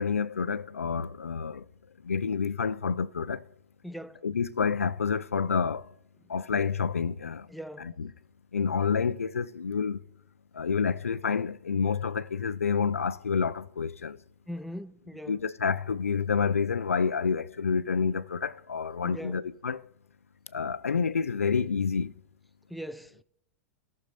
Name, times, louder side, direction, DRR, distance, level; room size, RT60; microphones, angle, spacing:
voice 1, 0.0-1.6 2.0-3.5 4.2-5.9 6.3-7.5 7.8-8.1 8.5-10.0 10.5-14.2 15.3-19.9 20.5-22.1, left 6 dB, 90° left, 0.5 m, -28 dB
voice 2, 3.8-4.2 7.5-7.9 14.5-15.4 19.0-19.4 22.7-23.2, equal, ahead, 0.5 m, -40 dB
17.5 x 6.5 x 4.1 m
hypercardioid pair, 100°, 7 cm